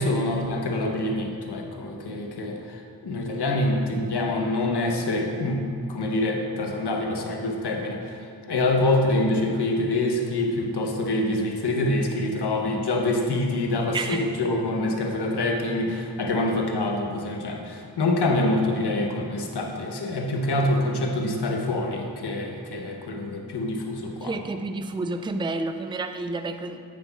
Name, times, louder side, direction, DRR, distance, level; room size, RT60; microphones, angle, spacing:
voice 1, 0.0-24.3, left 2 dB, 75° left, 2 dB, 1.0 m, -26 dB
voice 2, 13.9-14.3 24.2-26.8, right 3 dB, 10° right, 8 dB, 0.4 m, -30 dB
9.4 x 8.0 x 2.4 m, 2.2 s
cardioid pair, 60°, 41 cm